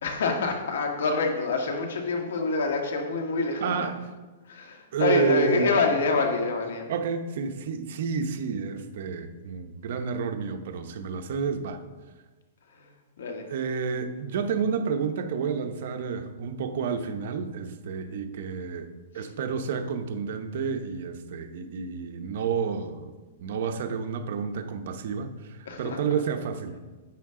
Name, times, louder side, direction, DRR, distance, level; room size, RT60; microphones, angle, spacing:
voice 1, 0.0-3.9 4.5-6.9 12.8-12.9 13.2-13.5 25.7-26.0, left 4 dB, 80° left, 3 dB, 1.8 m, -26 dB
voice 2, 3.6-4.0 4.9-5.8 6.9-11.8 13.5-23.1 23.4-26.8, right 6 dB, 60° right, 6 dB, 0.9 m, -30 dB
10.5 x 8.3 x 3.8 m, 1.3 s
hypercardioid pair, 155°, 0 cm